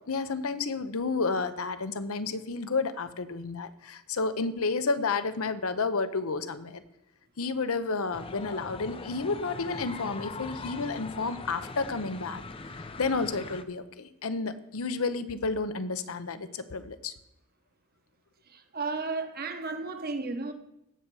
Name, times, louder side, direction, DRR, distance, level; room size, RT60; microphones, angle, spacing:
voice 1, 0.1-6.8 7.4-17.1, left 4 dB, 70° left, 0.8 m, -31 dB
sound 1, 8.1-13.6, left 3 dB, 25° left, 0.6 m, -41 dB
voice 2, 18.7-20.5, right 3 dB, 45° right, 1.1 m, -33 dB
16.5 x 6.5 x 4.7 m
head